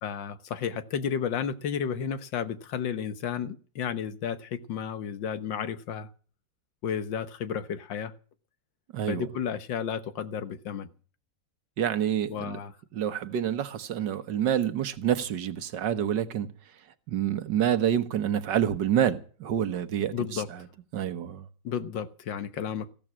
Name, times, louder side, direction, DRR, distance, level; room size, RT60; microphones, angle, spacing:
voice 1, 0.0-6.1 6.8-8.1 9.1-10.9 12.3-12.7 20.1-20.5 21.6-22.9, left 7 dB, 85° left, 1.9 m, -32 dB
voice 2, 8.9-9.3 11.8-12.6 12.9-16.5 17.1-20.6 20.9-21.5, right 10 dB, 75° right, 1.7 m, -27 dB
15.5 x 12.5 x 6.1 m
omnidirectional pair, 2.0 m